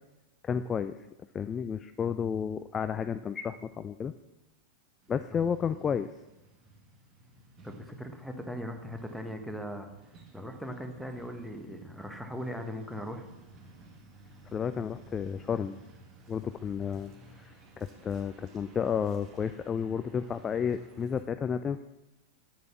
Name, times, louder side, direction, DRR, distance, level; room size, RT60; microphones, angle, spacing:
voice 1, 0.4-1.0 1.3-4.1 5.1-6.1 14.5-15.8 16.3-17.1 17.4-21.8, left 7 dB, 20° left, 11 dB, 0.3 m, -32 dB
Truck, 5.0-21.2, right 2 dB, 30° right, 2.1 m, -55 dB
voice 2, 7.6-9.9 10.3-13.2, equal, ahead, 5 dB, 1.3 m, -39 dB
9.2 x 8.3 x 6.0 m, 1.0 s
figure-of-eight pair, 90°, 0 cm